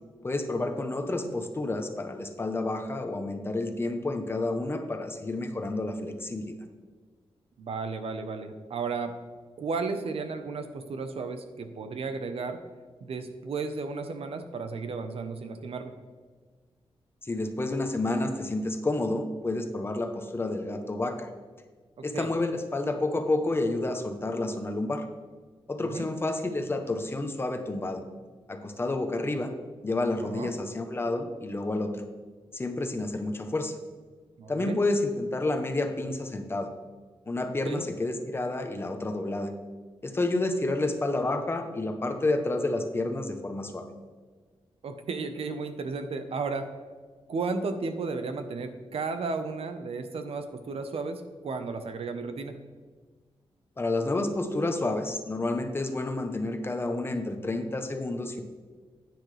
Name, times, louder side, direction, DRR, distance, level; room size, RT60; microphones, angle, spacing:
voice 1, 0.2-6.6 17.2-21.3 22.0-25.0 25.7-28.0 28.5-29.5 29.8-32.0 32.5-33.8 34.5-36.7 37.3-39.5 40.0-43.9 53.8-58.4, left 2 dB, 25° left, 6 dB, 0.9 m, -30 dB
voice 2, 7.6-9.1 9.6-12.6 13.0-16.0 22.0-22.3 25.8-26.1 30.2-30.5 34.4-34.8 37.6-37.8 44.8-46.7 47.3-52.6, right 4 dB, 70° right, 8 dB, 1.0 m, -34 dB
10.0 x 9.7 x 3.4 m, 1.5 s
wide cardioid pair, 165°, 10 cm